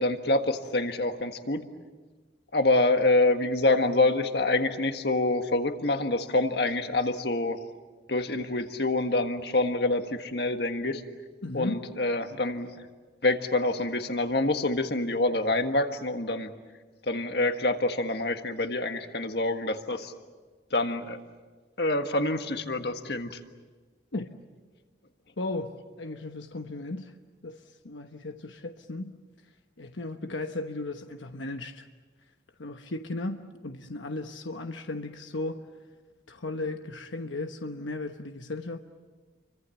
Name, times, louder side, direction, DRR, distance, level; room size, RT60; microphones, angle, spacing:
voice 1, 0.0-1.6 2.5-7.6 8.1-11.0 11.5-12.8 13.2-16.5 17.0-20.1 20.7-21.2 21.8-23.4, left 2 dB, 60° left, 1.6 m, -26 dB
voice 2, 11.4-11.8 24.1-24.3 25.4-27.1 27.4-29.1 29.8-31.9 32.6-35.6 36.3-38.8, left 2 dB, 90° left, 1.1 m, -36 dB
29.0 x 24.0 x 7.1 m
head